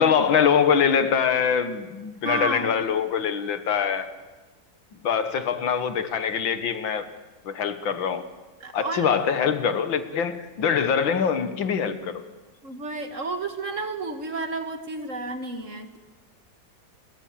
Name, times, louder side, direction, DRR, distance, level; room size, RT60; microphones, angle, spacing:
voice 1, 0.0-4.1 5.0-7.1 7.5-8.2 8.7-12.2, left 7 dB, 85° left, 11 dB, 2.1 m, -23 dB
voice 2, 2.2-2.8 8.6-9.1 12.6-16.0, right 3 dB, 40° right, 7 dB, 2.2 m, -31 dB
28.5 x 23.0 x 7.5 m, 1.2 s
omnidirectional pair, 2.1 m